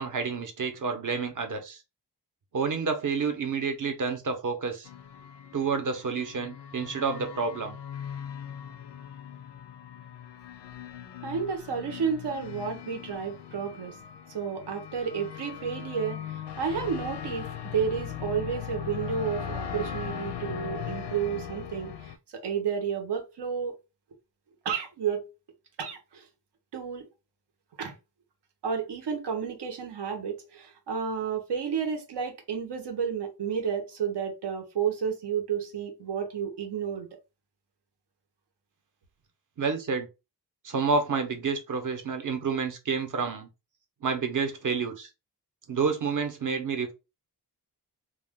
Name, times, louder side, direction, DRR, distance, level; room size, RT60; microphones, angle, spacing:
voice 1, 0.0-1.8 2.5-4.9 5.5-7.8 39.6-40.1 40.6-43.5 44.0-45.1 45.7-46.9, right 5 dB, 50° right, 0.7 m, -29 dB
sound 1, 4.8-22.2, left 9 dB, 85° left, 0.5 m, -39 dB
voice 2, 11.2-14.0 14.3-23.8 24.6-25.3 25.8-26.3 26.7-27.1 27.8-27.9 28.6-37.1, right 7 dB, 85° right, 0.9 m, -31 dB
2.3 x 2.3 x 3.5 m
wide cardioid pair, 150°, 40 cm